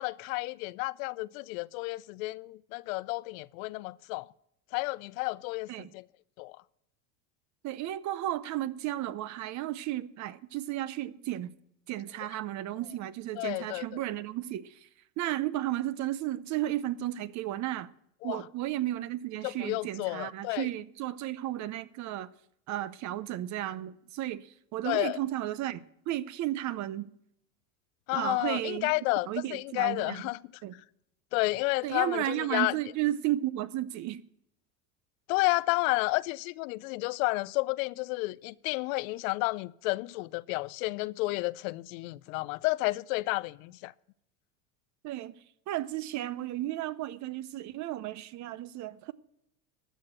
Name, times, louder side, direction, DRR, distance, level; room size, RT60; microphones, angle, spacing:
voice 1, 0.0-4.3 4.7-6.0 6.4-6.6 13.4-14.0 18.2-18.4 19.4-20.7 24.9-25.2 28.1-30.4 31.3-32.8 35.3-43.9, left 23 dB, 70° left, 0.5 m, -31 dB
voice 2, 7.6-11.5 11.9-14.8 15.2-17.9 18.2-22.3 22.7-27.1 28.1-28.9 29.3-30.2 30.6-30.8 31.8-34.2 45.0-45.3 45.7-49.1, right 14 dB, 45° right, 0.6 m, -33 dB
13.0 x 6.3 x 7.7 m
supercardioid pair, 115°, 43 cm